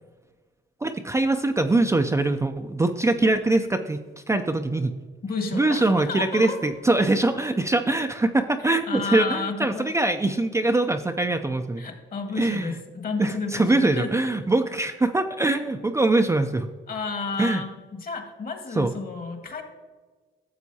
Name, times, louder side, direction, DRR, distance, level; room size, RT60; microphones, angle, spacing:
voice 1, 0.8-4.0 4.3-4.9 5.5-11.8 12.4-12.7 13.2-16.7 17.4-17.6 18.8-18.9, right 2 dB, 15° right, 5 dB, 0.4 m, -23 dB
voice 2, 5.2-6.6 8.9-9.9 11.8-14.1 16.9-19.6, left 4 dB, 45° left, 5 dB, 1.6 m, -31 dB
13.0 x 7.2 x 2.8 m, 1.4 s
cardioid pair, 90°, 20 cm